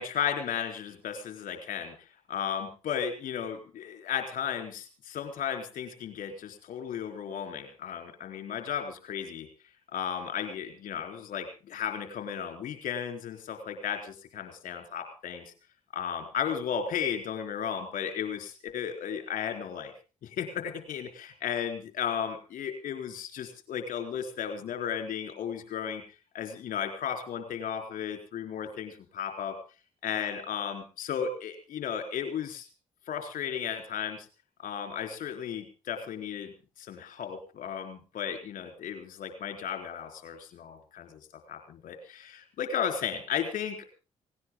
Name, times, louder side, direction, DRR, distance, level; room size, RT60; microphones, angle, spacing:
voice 1, 0.0-1.9 2.3-9.5 9.9-15.5 15.9-19.9 20.2-26.0 26.3-29.5 30.0-32.7 33.1-34.3 34.6-36.5 36.8-41.2 41.5-43.9, left 8 dB, 60° left, 5 dB, 3.8 m, -34 dB
18.0 x 18.0 x 3.8 m, 0.34 s
hypercardioid pair, 40°, 15 cm